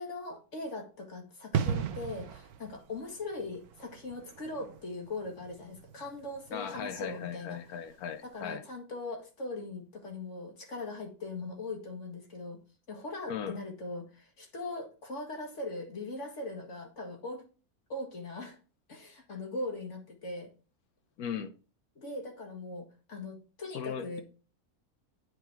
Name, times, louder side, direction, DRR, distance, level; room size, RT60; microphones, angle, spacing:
voice 1, 0.0-7.6 8.2-12.6 12.9-17.4 17.9-18.6 18.9-20.5 22.0-24.2, left 2 dB, 55° left, 2.1 m, -40 dB
sound 1, 1.5-8.0 8.3-8.5, right 8 dB, 85° right, 1.3 m, -38 dB
voice 2, 6.5-8.6 13.3-13.6 21.2-21.5 23.7-24.2, left 8 dB, 80° left, 1.4 m, -38 dB
9.1 x 4.8 x 4.5 m
omnidirectional pair, 1.6 m